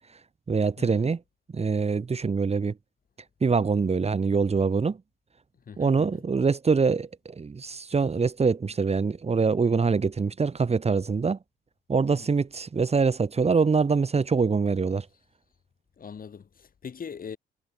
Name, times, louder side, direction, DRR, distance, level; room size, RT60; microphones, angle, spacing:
voice 1, 0.5-1.2 1.5-2.7 3.4-5.0 5.8-11.4 11.9-15.1, right 5 dB, 30° right, 2.4 m, -24 dB
voice 2, 5.7-6.2 12.1-12.3 16.0-17.4, left 6 dB, 45° left, 4.7 m, -41 dB
cardioid pair, 90°, 20 cm